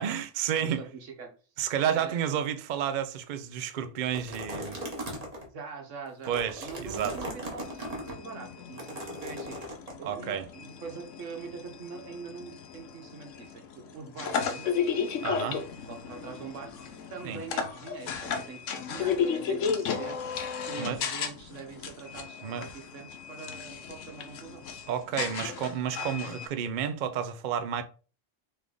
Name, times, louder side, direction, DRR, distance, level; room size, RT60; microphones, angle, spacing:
voice 1, 0.0-0.8 1.6-4.8 6.3-7.2 10.0-10.4 15.2-15.6 17.2-17.4 20.8-21.0 22.4-22.7 24.9-27.8, right 8 dB, 60° right, 0.5 m, -31 dB
voice 2, 0.5-1.3 1.9-2.4 5.5-6.3 6.6-9.7 10.0-16.7 17.1-20.2 20.7-24.6, right 5 dB, 80° right, 1.3 m, -43 dB
sound 1, 4.1-5.4 6.1-8.1 8.8-9.9, equal, 35° right, 1.1 m, -38 dB
sound 2, 7.6-26.5, left 6 dB, 90° left, 1.0 m, -34 dB
3.4 x 3.3 x 3.7 m
omnidirectional pair, 1.3 m